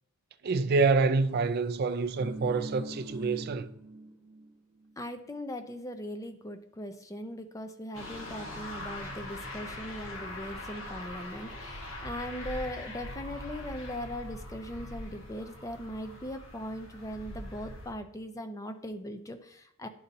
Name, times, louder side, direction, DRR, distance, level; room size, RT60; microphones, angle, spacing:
voice 1, 0.4-3.7, right 4 dB, 45° right, 0.3 m, -27 dB
sound 1, 1.8-4.5 4.8-4.9, right 1 dB, 5° right, 1.0 m, -42 dB
voice 2, 5.0-19.9, equal, 15° left, 0.5 m, -39 dB
sound 2, 7.9-17.9, left 1 dB, 65° left, 1.2 m, -42 dB
11.0 x 4.1 x 2.7 m
head